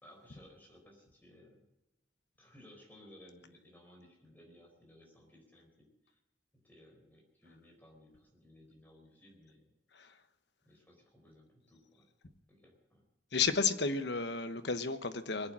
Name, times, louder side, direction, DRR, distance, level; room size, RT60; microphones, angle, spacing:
voice 1, 0.0-1.7 2.4-6.2 6.5-9.7 10.6-12.1 12.5-13.1, left 1 dB, 10° left, -1 dB, 4.2 m, -59 dB
voice 2, 13.3-15.5, left 5 dB, 65° left, 10 dB, 1.1 m, -32 dB
21.5 x 8.7 x 7.5 m, 0.96 s
head